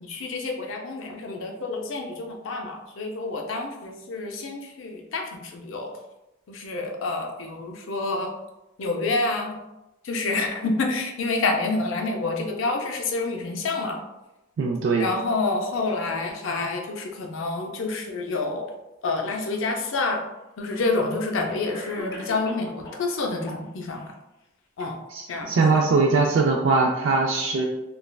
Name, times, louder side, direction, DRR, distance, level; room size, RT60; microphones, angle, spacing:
voice 1, 0.0-5.9 6.5-8.3 8.8-9.6 10.0-14.0 15.0-18.7 19.0-20.2 20.6-24.0 24.8-24.9 25.3-25.5, left 3 dB, 70° left, 2 dB, 0.5 m, -28 dB
voice 2, 14.6-15.1 25.1-27.7, right 4 dB, 65° right, 0 dB, 0.3 m, -21 dB
Cough, 21.7-23.1 23.5-24.1, left 1 dB, 20° left, 0.5 m, -40 dB
3.2 x 2.3 x 2.2 m, 0.98 s
head